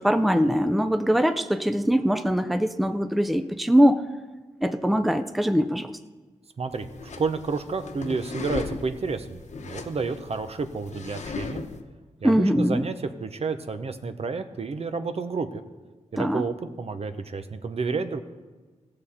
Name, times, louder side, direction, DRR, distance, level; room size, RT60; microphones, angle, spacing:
voice 1, 0.0-4.0 4.6-5.9 12.2-12.8 16.2-16.4, equal, ahead, 9 dB, 0.5 m, -22 dB
voice 2, 6.6-6.9 7.2-11.6 12.2-15.6 16.1-18.2, right 4 dB, 55° right, 9 dB, 0.7 m, -30 dB
sound 1, 6.7-11.8, left 4 dB, 70° left, 1.0 m, -37 dB
16.5 x 6.7 x 4.3 m, 1.3 s
cardioid pair, 70°, 12 cm